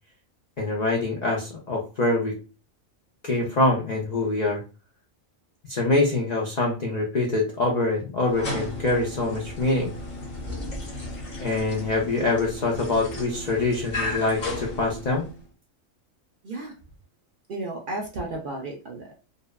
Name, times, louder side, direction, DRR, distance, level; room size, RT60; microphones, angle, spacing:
voice 1, 0.6-2.4 3.2-4.6 5.7-9.9 11.4-15.3, left 2 dB, 90° left, -1 dB, 0.3 m, -24 dB
sound 1, 8.2-15.4, left 2 dB, 40° left, 0.9 m, -34 dB
voice 2, 16.4-16.7 17.5-19.2, right 2 dB, 70° right, 0 dB, 0.5 m, -33 dB
2.6 x 2.1 x 2.2 m, 0.33 s
omnidirectional pair, 1.4 m